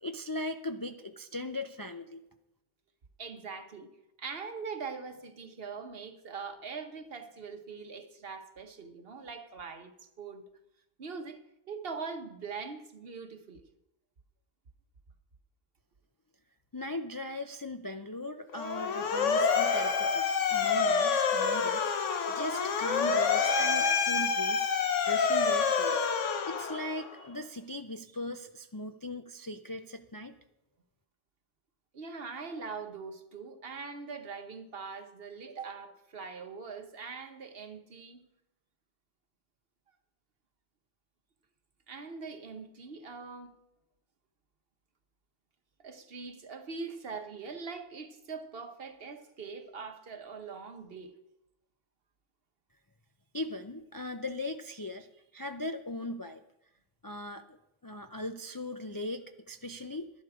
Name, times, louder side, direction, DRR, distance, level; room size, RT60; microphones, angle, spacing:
voice 1, 0.0-2.2 16.7-21.9 22.3-24.7 25.1-30.3 53.3-56.4 57.0-60.1, left 1 dB, 35° left, 6 dB, 0.3 m, -39 dB
voice 2, 3.2-3.9 4.2-10.4 11.0-11.4 11.7-13.6 31.9-38.2 41.9-43.5 45.8-51.1, right 5 dB, 55° right, 7 dB, 1.2 m, -42 dB
Motor vehicle (road) / Siren, 18.5-27.1, left 5 dB, 90° left, 1.3 m, -27 dB
11.5 x 11.5 x 4.9 m, 0.88 s
omnidirectional pair, 1.2 m